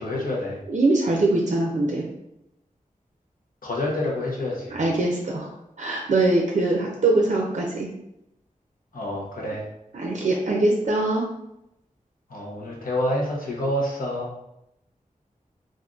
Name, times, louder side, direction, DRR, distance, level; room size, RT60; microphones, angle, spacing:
voice 1, 0.0-0.6 3.6-4.8 8.9-9.6 12.3-14.3, left 1 dB, 85° left, -3 dB, 0.8 m, -28 dB
voice 2, 0.7-2.1 4.7-5.5 5.8-7.9 9.9-11.3, right 2 dB, 60° right, -1 dB, 0.4 m, -22 dB
3.7 x 2.5 x 2.4 m, 0.84 s
wide cardioid pair, 90°, 14 cm